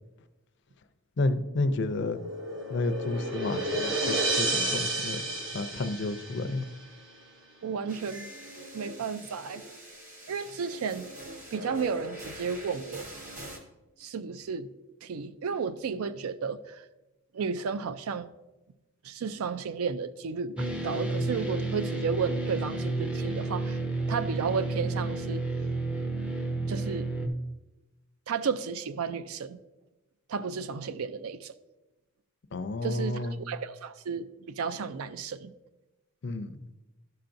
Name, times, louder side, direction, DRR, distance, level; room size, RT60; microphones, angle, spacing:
voice 1, 1.2-2.2 2.7-5.2 5.5-6.6 32.5-33.4 36.2-36.6, left 2 dB, 50° left, 0.4 m, -31 dB
sound 1, 1.6-6.8, right 1 dB, 60° right, 1.0 m, -31 dB
voice 2, 7.6-8.3 8.7-9.6 10.3-11.1 11.5-13.1 14.0-14.7 15.0-16.8 17.3-18.3 19.0-23.8 24.1-25.4 26.7-27.1 28.3-29.6 30.3-31.5 32.8-35.5, right 5 dB, 80° right, 0.4 m, -33 dB
sound 2, 7.9-13.6, equal, 35° right, 1.1 m, -44 dB
sound 3, 20.6-27.3, right 2 dB, 5° right, 0.4 m, -31 dB
12.0 x 5.7 x 2.6 m
head